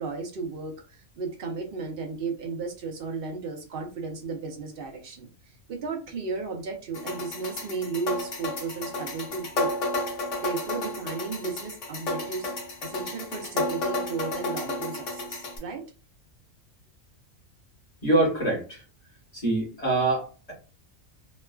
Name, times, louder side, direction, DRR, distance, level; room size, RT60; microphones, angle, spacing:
voice 1, 0.0-5.3 5.7-9.7 10.4-12.5 12.8-15.9, right 4 dB, 55° right, 3 dB, 0.7 m, -34 dB
sound 1, 6.9-15.6, left 2 dB, 65° left, 1.2 m, -32 dB
voice 2, 18.0-18.8 19.3-20.5, right 2 dB, 30° left, -3 dB, 1.2 m, -25 dB
3.1 x 2.3 x 2.2 m, 0.35 s
omnidirectional pair, 1.4 m